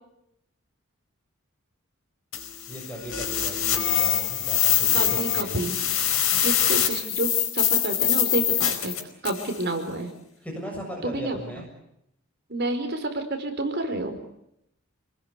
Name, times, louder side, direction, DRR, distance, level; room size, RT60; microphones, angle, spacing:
sound 1, 2.3-9.5, left 10 dB, 75° left, 4.7 m, -24 dB
voice 1, 2.7-5.6 10.4-11.7, equal, 5° left, 0 dB, 7.1 m, -37 dB
voice 2, 4.9-6.1 6.4-8.9 9.2-10.1 11.0-11.4 12.5-14.2, right 2 dB, 50° right, 6 dB, 4.8 m, -29 dB
28.5 x 20.0 x 8.3 m, 0.79 s
head